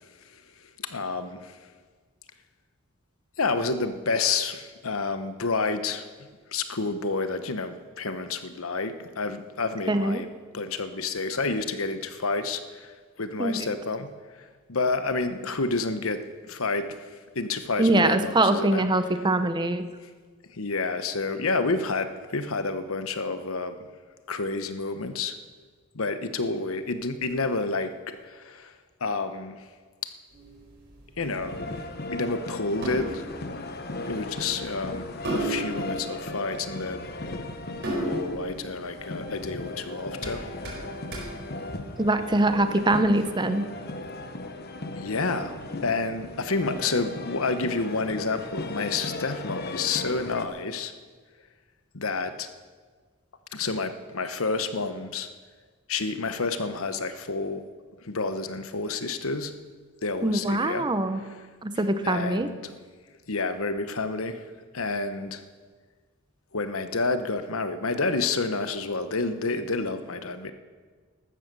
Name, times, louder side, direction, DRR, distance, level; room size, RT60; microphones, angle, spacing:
voice 1, 0.8-1.6 3.4-6.1 6.5-14.1 14.4-18.8 20.0-20.1 20.5-23.9 24.3-25.4 25.9-28.7 29.0-29.6 30.0-30.1 31.2-33.2 34.1-35.1 35.3-37.3 37.9-40.5 45.0-45.6 45.8-50.9 51.9-52.5 53.5-55.3 55.9-57.7 58.0-59.5 60.0-60.9 62.0-62.8 63.3-64.5 64.7-65.4 66.5-70.5, left 3 dB, 75° left, 10 dB, 1.0 m, -29 dB
voice 2, 9.9-10.2 13.4-13.6 17.8-19.8 42.0-43.7 60.2-61.2 61.6-62.5, right 2 dB, 20° right, 10 dB, 0.7 m, -23 dB
sound 1, 30.3-42.4, right 2 dB, 55° right, 4.8 m, -37 dB
sound 2, 31.2-50.5, left 2 dB, 45° left, 1.1 m, -37 dB
14.0 x 12.5 x 6.9 m, 1.5 s
head